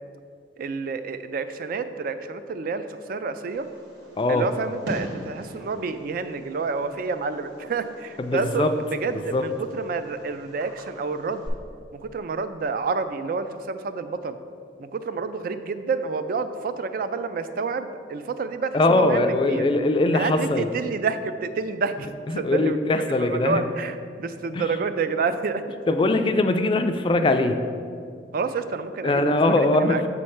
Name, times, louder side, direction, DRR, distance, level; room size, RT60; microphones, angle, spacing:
voice 1, 0.6-3.7 4.3-11.5 11.9-14.4 14.8-19.7 20.1-25.6 28.3-30.0, right 4 dB, 55° right, 11 dB, 0.3 m, -29 dB
Fireworks, 3.5-11.5, right 1 dB, 80° right, 1.4 m, -42 dB
voice 2, 4.2-4.5 8.2-8.7 9.3-9.4 18.7-20.7 22.3-23.6 24.5-24.6 25.9-27.6 29.0-30.1, left 2 dB, 30° left, 7 dB, 0.3 m, -21 dB
7.0 x 3.2 x 5.7 m, 2.3 s
head